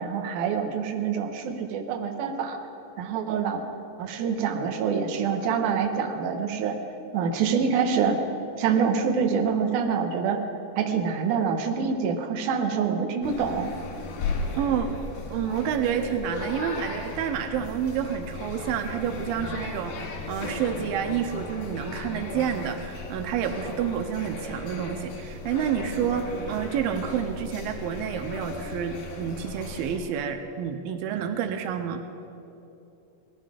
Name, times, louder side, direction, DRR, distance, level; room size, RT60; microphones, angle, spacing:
voice 1, 0.0-2.6 3.0-3.6 4.0-6.8 7.1-8.2 8.6-10.4 10.8-13.7, right 6 dB, 70° right, 4 dB, 2.4 m, -26 dB
sound 1, 13.2-30.0, left 3 dB, 85° left, 3.8 m, -36 dB
voice 2, 14.6-15.0 15.3-32.0, right 8 dB, 90° right, 7 dB, 2.5 m, -29 dB
19.0 x 13.5 x 5.0 m, 2.9 s
omnidirectional pair, 4.1 m